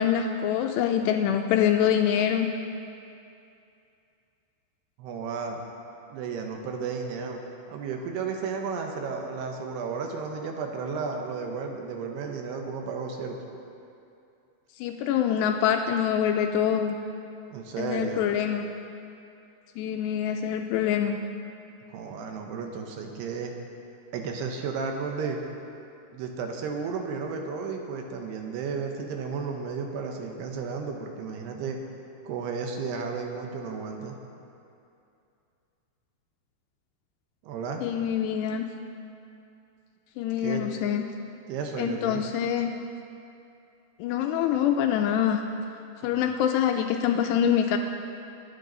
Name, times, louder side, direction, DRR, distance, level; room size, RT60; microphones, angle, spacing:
voice 1, 0.0-2.5 14.8-17.0 17.8-18.7 19.8-21.2 37.8-38.6 40.2-41.0 41.8-42.7 44.0-45.4 46.0-47.8, left 9 dB, 85° left, 4 dB, 2.5 m, -25 dB
voice 2, 5.0-5.6 6.1-7.4 7.7-13.4 17.5-18.3 21.9-23.5 24.1-25.4 26.1-31.8 32.2-34.2 37.4-37.8 40.4-40.7 41.5-42.2 46.0-46.3, right 5 dB, 75° right, 3 dB, 2.7 m, -33 dB
23.5 x 9.1 x 4.0 m, 2.6 s
omnidirectional pair, 5.4 m